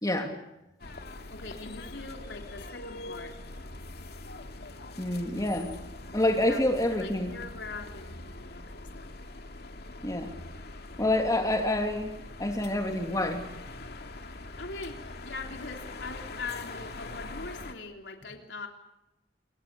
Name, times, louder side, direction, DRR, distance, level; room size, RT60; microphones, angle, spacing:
voice 1, 0.0-0.3 5.0-5.8 6.1-7.3 10.0-10.3 11.0-12.1 12.4-13.5, left 1 dB, 20° left, 3 dB, 2.7 m, -27 dB
sound 1, 0.8-17.7, left 2 dB, 65° left, 2.3 m, -43 dB
voice 2, 1.3-3.3 6.4-9.1 11.3-11.7 14.6-18.7, left 3 dB, 90° left, 3 dB, 3.4 m, -42 dB
29.0 x 24.5 x 6.9 m, 0.93 s
head